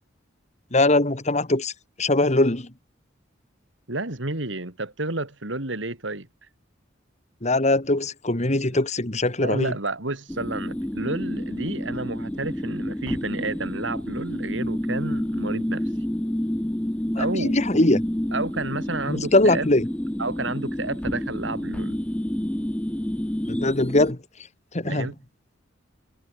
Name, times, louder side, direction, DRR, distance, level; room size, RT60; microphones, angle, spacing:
voice 1, 0.7-1.7 2.0-2.7 7.4-9.7 17.2-18.0 19.1-19.8 23.5-24.2 24.7-25.1, left 2 dB, 35° left, 2.2 m, -21 dB
voice 2, 3.9-6.3 8.7-8.8 9.4-15.8 17.2-17.6 18.3-19.7 20.2-22.0 24.8-25.1, right 2 dB, 70° right, 2.9 m, -31 dB
sound 1, 10.3-24.1, equal, 5° left, 0.5 m, -29 dB
head